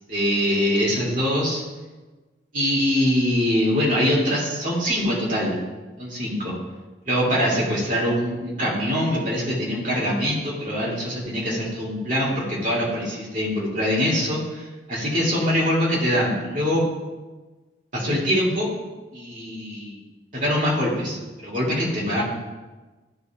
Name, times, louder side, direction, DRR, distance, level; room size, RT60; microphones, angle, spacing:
voice 1, 0.1-1.6 2.5-5.6 6.0-6.5 7.1-16.8 17.9-18.7 19.1-20.0 20.3-22.2, equal, 45° right, -5 dB, 2.4 m, -23 dB
13.0 x 5.4 x 2.4 m, 1.2 s
head